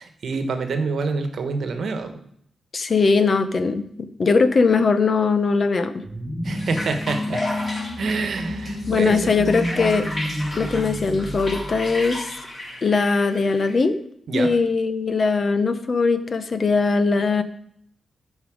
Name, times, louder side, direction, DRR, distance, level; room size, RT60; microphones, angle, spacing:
voice 1, 0.0-2.2 6.4-7.5 8.0-9.3 14.3-14.5, right 4 dB, 65° right, 7 dB, 1.2 m, -27 dB
voice 2, 2.7-6.0 8.9-10.1 10.6-12.3 12.8-14.0 14.3-17.4, left 4 dB, 40° left, 11 dB, 0.8 m, -20 dB
sound 1, 6.0-12.5, left 1 dB, 5° right, 4.4 m, -30 dB
sound 2, 6.4-13.8, left 1 dB, 25° left, 2.1 m, -34 dB
13.5 x 5.4 x 4.9 m, 0.68 s
wide cardioid pair, 125°, 0 cm